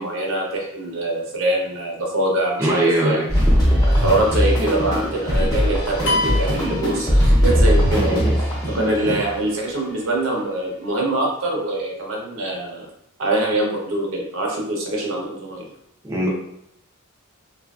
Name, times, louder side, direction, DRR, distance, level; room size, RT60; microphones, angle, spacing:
voice 1, 0.0-3.2 3.9-8.2 8.7-12.9 13.2-15.7, right 1 dB, 70° right, -1 dB, 0.7 m, -24 dB
voice 2, 2.6-3.3 7.9-8.3 8.7-8.8 9.0-9.1 16.0-16.3, right 1 dB, 15° right, -4 dB, 0.5 m, -21 dB
sound 1, 3.3-9.4, equal, 20° left, 0.8 m, -19 dB
sound 2, 6.1-7.8, left 2 dB, 60° left, 0.7 m, -26 dB
2.8 x 2.5 x 2.3 m, 0.76 s
head